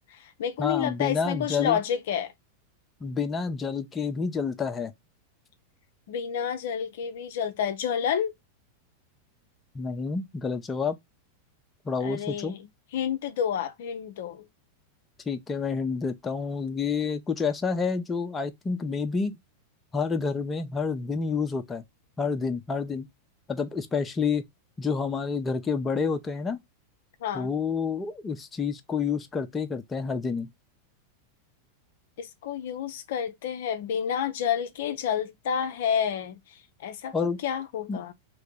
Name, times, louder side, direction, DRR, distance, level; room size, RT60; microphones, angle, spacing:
voice 1, 0.1-2.3 6.1-8.3 12.0-12.6 12.9-14.4 27.2-27.5 32.2-37.1 37.4-38.1, left 8 dB, 55° left, 0.6 m, -29 dB
voice 2, 0.6-1.8 3.0-4.9 9.7-11.0 11.9-12.6 15.3-19.4 19.9-21.8 22.2-23.1 23.5-24.5 24.8-26.6 27.3-30.5 37.1-37.4 37.9-38.0, left 5 dB, 15° left, 0.6 m, -29 dB
3.7 x 3.1 x 3.4 m
figure-of-eight pair, 90°, 0 cm